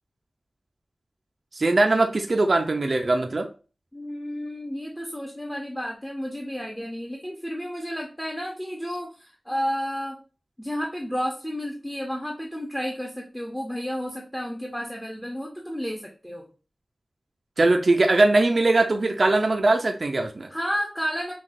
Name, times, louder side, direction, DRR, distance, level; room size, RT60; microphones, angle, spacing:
voice 1, 1.5-3.5 17.6-20.5, right 2 dB, 55° right, 4 dB, 0.4 m, -21 dB
voice 2, 3.9-10.2 10.6-16.5 20.5-21.3, equal, 5° left, 0 dB, 0.7 m, -31 dB
5.8 x 2.3 x 2.5 m, 0.35 s
wide cardioid pair, 75°, 0 cm